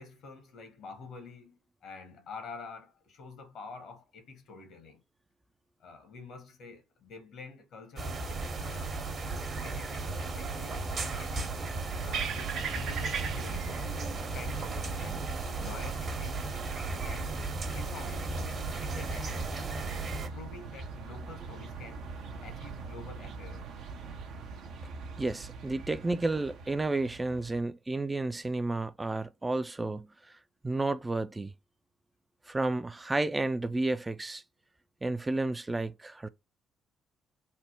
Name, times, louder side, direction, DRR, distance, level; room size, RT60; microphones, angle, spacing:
voice 1, 0.0-5.0 5.8-9.0 9.6-11.5 12.0-13.8 14.3-15.3 15.6-16.5 16.8-17.3 17.7-18.3 18.8-19.6 20.3-22.1 22.4-23.7, left 4 dB, 65° left, 1.1 m, -47 dB
sound 1, 8.0-20.3, right 3 dB, 50° right, 1.0 m, -35 dB
sound 2, 11.6-27.6, right 5 dB, 70° right, 0.6 m, -41 dB
voice 2, 25.2-30.1 30.6-31.5 32.5-34.4 35.0-36.3, right 2 dB, 20° right, 0.4 m, -31 dB
3.4 x 2.1 x 4.3 m
hypercardioid pair, 50°, 0 cm